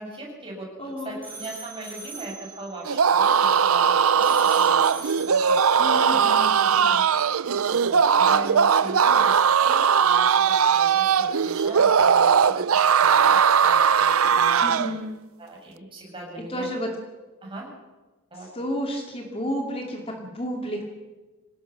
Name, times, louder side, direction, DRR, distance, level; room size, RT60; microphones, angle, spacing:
voice 1, 0.0-0.7 1.0-4.8 5.1-5.6 6.1-6.3 7.8-12.6 13.0-13.3 13.6-15.0 15.4-16.7 17.4-17.7 18.3-18.5, right 1 dB, 25° right, -2 dB, 7.8 m, -38 dB
voice 2, 0.8-1.2 5.8-7.0 14.6-15.1 16.5-16.9 18.5-20.9, equal, 25° left, 1 dB, 2.7 m, -31 dB
sound 1, 0.8-3.9 4.2-6.2, right 3 dB, 5° left, 4.9 m, -42 dB
sound 2, 2.9-15.0, right 7 dB, 70° right, 0.6 m, -19 dB
25.5 x 18.5 x 6.2 m, 1.2 s
head